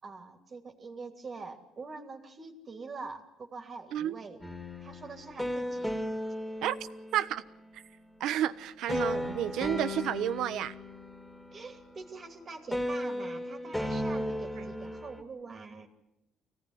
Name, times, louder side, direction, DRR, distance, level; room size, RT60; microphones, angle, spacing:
voice 1, 0.0-4.4 4.8-5.9 11.5-15.9, right 4 dB, 30° right, 4 dB, 3.0 m, -44 dB
voice 2, 3.9-4.2 6.6-6.8 7.1-7.4 7.7-7.8 8.2-10.7 14.6-14.7, right 11 dB, 70° right, 13 dB, 1.1 m, -31 dB
sound 1, 4.4-7.6 8.9-12.4 12.7-15.2, left 1 dB, 5° left, 3.5 m, -36 dB
26.5 x 17.5 x 9.7 m, 0.90 s
cardioid pair, 130°, 0 cm